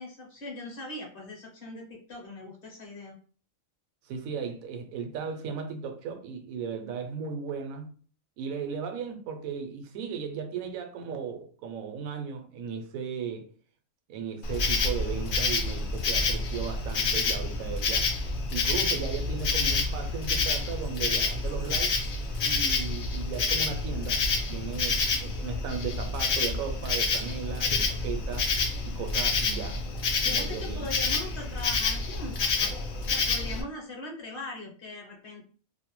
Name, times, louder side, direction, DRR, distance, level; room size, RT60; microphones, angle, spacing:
voice 1, 0.0-3.2 30.2-32.7 33.1-35.5, left 2 dB, 50° left, 0.8 m, -40 dB
voice 2, 4.1-7.9 8.4-13.5 14.1-18.1 18.5-22.0 22.4-24.2 24.5-28.5 28.8-29.8 30.2-30.9, right 6 dB, 85° right, 1.0 m, -36 dB
Insect, 14.4-33.6, left 4 dB, 75° left, 0.4 m, -28 dB
2.6 x 2.1 x 2.9 m
omnidirectional pair, 1.4 m